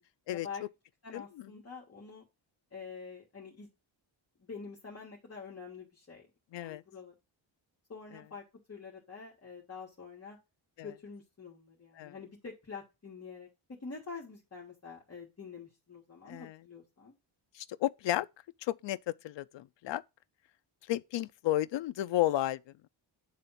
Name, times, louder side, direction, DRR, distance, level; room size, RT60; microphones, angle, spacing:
voice 1, 0.3-0.6 1.0-2.2 2.7-3.7 4.4-6.2 6.6-7.1 7.9-8.4 8.7-10.4 10.8-17.1, left 5 dB, 30° left, 1.8 m, -46 dB
voice 2, 1.1-1.5 6.5-6.8 10.8-10.9 12.0-12.1 16.3-16.6 17.5-18.3 18.6-20.0 20.9-22.6, left 14 dB, 65° left, 0.5 m, -33 dB
9.4 x 3.5 x 5.6 m
wide cardioid pair, 175°, 48 cm